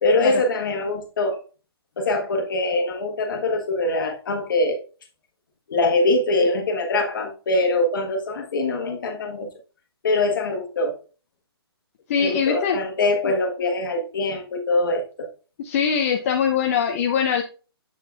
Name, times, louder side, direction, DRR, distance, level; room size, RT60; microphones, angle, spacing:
voice 1, 0.0-1.4 2.0-4.8 5.7-9.5 10.0-11.0 12.2-15.3, left 2 dB, 55° left, 3 dB, 1.5 m, -23 dB
voice 2, 12.1-12.8 13.2-13.3 15.6-17.4, left 7 dB, 35° left, 3 dB, 0.6 m, -22 dB
7.4 x 6.6 x 2.4 m, 0.37 s
figure-of-eight pair, 140°, 14 cm